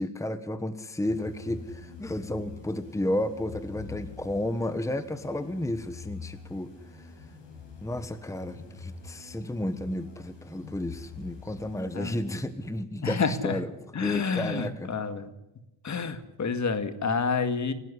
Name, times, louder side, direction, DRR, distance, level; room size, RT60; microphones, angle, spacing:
voice 1, 0.0-6.7 7.8-13.7 14.0-14.9, left 1 dB, 5° left, 11 dB, 1.4 m, -32 dB
sound 1, 1.1-12.8, left 5 dB, 75° left, 7.6 m, -45 dB
voice 2, 13.0-13.6 13.9-15.3 15.8-17.7, left 5 dB, 40° left, 10 dB, 2.0 m, -29 dB
29.0 x 13.0 x 9.9 m, 0.96 s
cardioid pair, 105°, 42 cm